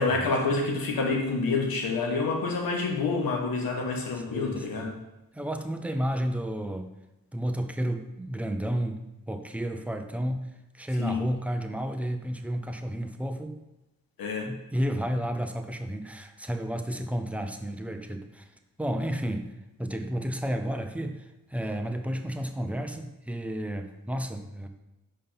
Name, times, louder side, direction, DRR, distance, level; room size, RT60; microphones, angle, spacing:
voice 1, 0.0-4.9 11.0-11.2 14.2-14.4, left 3 dB, 90° left, 1 dB, 1.3 m, -27 dB
voice 2, 4.1-4.9 5.3-6.9 7.3-10.5 10.7-13.6 14.5-18.5 18.8-19.5 19.8-24.7, equal, 5° right, 6 dB, 0.7 m, -32 dB
5.6 x 5.1 x 5.6 m, 0.97 s
cardioid pair, 70°, 34 cm